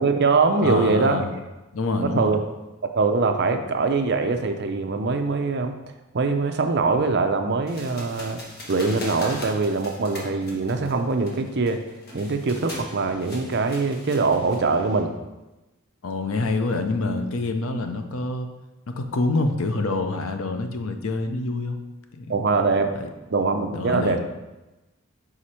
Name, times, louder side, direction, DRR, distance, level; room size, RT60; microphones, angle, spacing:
voice 1, 0.0-1.2 2.0-2.4 2.9-5.8 6.1-8.4 8.7-11.8 12.1-15.1 22.3-22.9 23.3-24.2, right 4 dB, 50° right, 6 dB, 0.5 m, -23 dB
voice 2, 0.6-1.3 1.7-2.4 16.0-18.5 18.9-21.8 22.1-22.4 23.0-23.1 23.7-24.2, left 3 dB, 70° left, 6 dB, 0.6 m, -26 dB
sound 1, 7.7-15.0, left 1 dB, 45° left, 1.3 m, -40 dB
5.0 x 4.9 x 4.3 m, 1.0 s
head